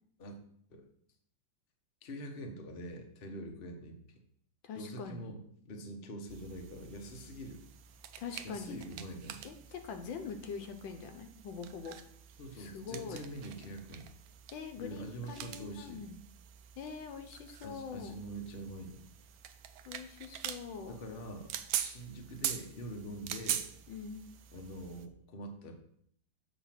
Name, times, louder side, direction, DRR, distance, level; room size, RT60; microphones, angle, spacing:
voice 1, 2.0-4.2 4.8-7.6 8.4-9.4 12.4-14.1 14.8-16.0 17.6-19.0 20.8-23.7 24.5-25.7, right 1 dB, 40° left, 3 dB, 0.9 m, -44 dB
voice 2, 4.6-5.3 8.2-8.8 9.4-12.0 12.5-13.2 14.5-16.2 16.8-18.2 19.8-21.0 23.9-24.2, left 5 dB, 75° left, 6 dB, 1.4 m, -43 dB
sound 1, 6.3-25.1, right 10 dB, 85° right, 0.8 m, -44 dB
7.2 x 4.0 x 5.8 m, 0.65 s
omnidirectional pair, 2.2 m